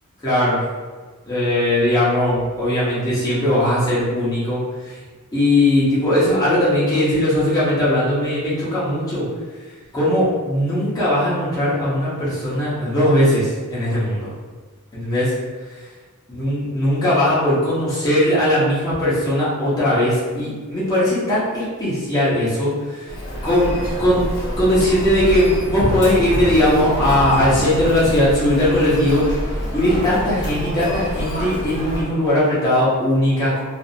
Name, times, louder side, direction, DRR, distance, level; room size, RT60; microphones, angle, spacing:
voice 1, 0.2-0.6 1.3-4.6 4.9-5.0 5.3-9.3 9.9-14.3 14.9-15.3 16.3-23.1 23.4-29.2 29.7-33.6, left 1 dB, 15° left, -10 dB, 0.9 m, -19 dB
Human voice, 23.1-32.0, equal, 50° left, 0.8 m, -27 dB
2.5 x 2.0 x 2.6 m, 1.4 s
head